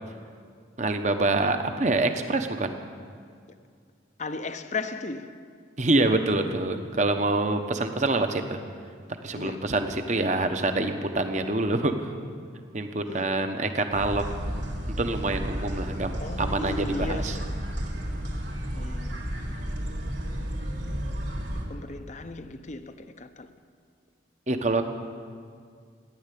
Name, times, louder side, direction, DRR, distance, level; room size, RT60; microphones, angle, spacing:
voice 1, 0.8-2.7 5.8-8.6 9.2-12.1 12.7-14.2 15.0-17.4 24.5-24.8, right 2 dB, 40° right, 1.0 m, -26 dB
voice 2, 4.2-5.4 9.3-9.6 13.1-13.3 16.2-17.5 18.7-19.2 21.5-23.5, left 3 dB, 35° left, 0.6 m, -36 dB
sound 1, 13.9-21.6, equal, 70° right, 3.2 m, -32 dB
16.0 x 11.0 x 8.4 m
head